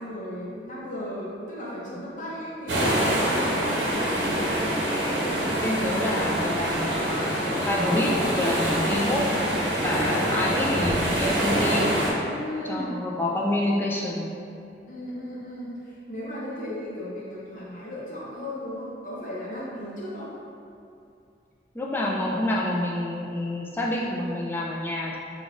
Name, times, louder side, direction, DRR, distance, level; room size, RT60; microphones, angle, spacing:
voice 1, 0.0-4.7 12.2-12.9 14.9-20.3, left 1 dB, 45° left, -7 dB, 0.8 m, -35 dB
sound 1, 2.7-12.1, equal, 75° right, 0.7 m, -25 dB
voice 2, 5.6-11.9 12.6-14.3 21.7-25.2, left 1 dB, 10° left, -3 dB, 0.4 m, -28 dB
3.9 x 2.4 x 3.7 m, 2.6 s
head